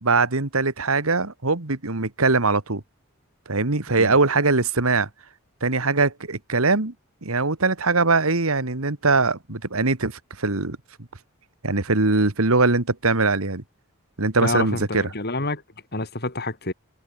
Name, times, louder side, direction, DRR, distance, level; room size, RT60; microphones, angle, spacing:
voice 1, 0.0-2.8 3.5-5.1 5.6-6.9 7.2-10.8 11.6-13.6 14.2-15.0, right 3 dB, 80° right, 2.0 m, -21 dB
voice 2, 14.4-15.6 15.9-16.7, left 2 dB, 50° left, 5.8 m, -28 dB
head